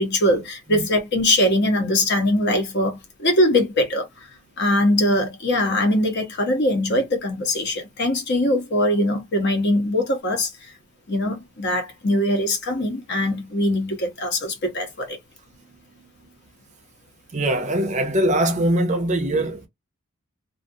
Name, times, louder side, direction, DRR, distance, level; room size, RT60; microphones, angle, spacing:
voice 1, 0.0-4.1 4.6-10.5 11.1-15.2, left 1 dB, 50° left, 0.8 m, -21 dB
voice 2, 17.3-19.7, right 1 dB, 30° right, 0.5 m, -22 dB
2.4 x 2.4 x 2.6 m
head